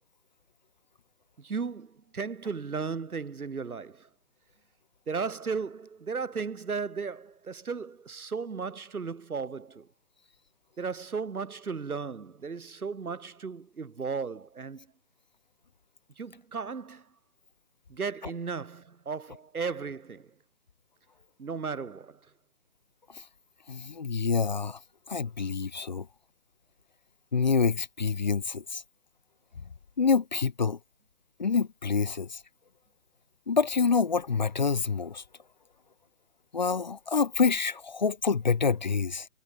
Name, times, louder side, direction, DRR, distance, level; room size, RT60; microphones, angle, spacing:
voice 1, 1.4-4.1 5.1-9.9 10.8-14.9 16.2-17.1 17.9-20.3 21.4-22.3, right 5 dB, 85° right, 2.1 m, -35 dB
voice 2, 23.7-24.8 25.1-26.1 27.3-28.8 30.0-30.8 31.4-32.4 33.5-35.2 36.5-39.3, left 5 dB, 30° left, 0.7 m, -27 dB
hypercardioid pair, 160°, 43 cm